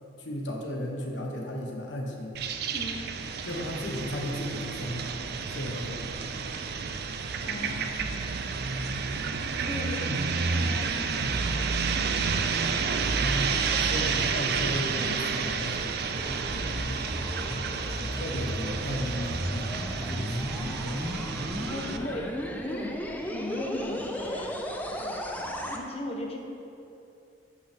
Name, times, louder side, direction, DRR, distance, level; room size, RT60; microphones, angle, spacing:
voice 1, 0.2-2.4 3.5-5.1 5.5-6.4 10.0-10.2 13.1-16.0 17.7-21.3, equal, 85° left, 0 dB, 1.1 m, -35 dB
sound 1, 2.4-22.0, right 5 dB, 60° right, 0.5 m, -30 dB
voice 2, 2.7-3.1 7.4-8.2 9.6-11.9 13.8-14.1 16.8-17.1 21.6-23.0 23.3-26.4, left 1 dB, 35° left, 1 dB, 0.9 m, -38 dB
sound 2, 15.9-25.8, equal, 10° left, 0.5 m, -35 dB
11.0 x 5.6 x 3.5 m, 2.8 s
head